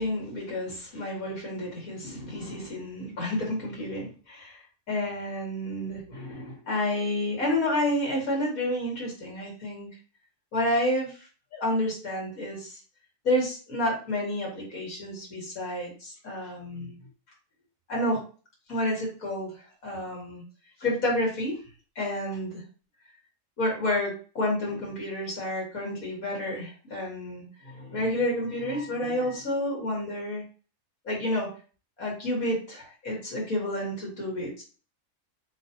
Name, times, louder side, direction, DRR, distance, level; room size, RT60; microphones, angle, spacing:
voice 1, 0.0-9.9 10.5-11.2 11.5-12.8 13.2-16.9 17.9-18.2 18.7-19.5 19.8-20.4 20.8-21.6 22.0-22.6 23.6-30.4 31.1-31.5 32.0-34.6, left 1 dB, 90° left, -3 dB, 2.2 m, -30 dB
4.5 x 3.3 x 2.8 m, 0.37 s
omnidirectional pair, 1.4 m